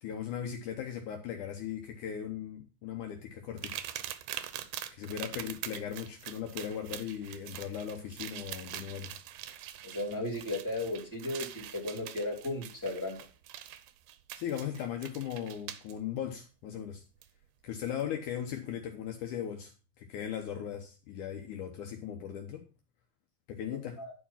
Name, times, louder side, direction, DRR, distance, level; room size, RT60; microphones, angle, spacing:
voice 1, 0.0-3.9 4.9-9.1 14.4-17.0 17.6-19.7 20.0-22.6 23.5-24.0, left 9 dB, 70° left, 3 dB, 2.4 m, -38 dB
sound 1, 3.6-15.9 17.2-17.3 17.9-18.0, right 12 dB, 85° right, 2.5 m, -44 dB
voice 2, 9.8-13.2 23.7-24.1, left 2 dB, 5° left, -1 dB, 3.5 m, -35 dB
11.0 x 5.0 x 5.7 m, 0.35 s
omnidirectional pair, 3.9 m